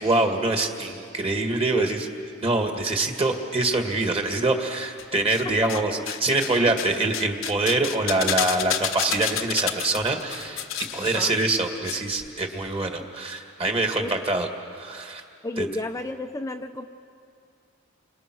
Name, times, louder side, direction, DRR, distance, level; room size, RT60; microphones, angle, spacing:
voice 1, 0.0-2.1 2.4-10.6 10.9-15.2 15.6-15.7, right 2 dB, 30° right, 4 dB, 2.1 m, -25 dB
sound 1, 5.0-5.8 6.1-11.9 12.2-12.3, left 10 dB, 70° left, 0.9 m, -30 dB
voice 2, 5.4-5.8 11.0-11.4 13.0-13.1 14.0-14.1 15.4-16.9, left 2 dB, 15° left, 4 dB, 0.6 m, -32 dB
29.0 x 25.0 x 6.3 m, 2.4 s
head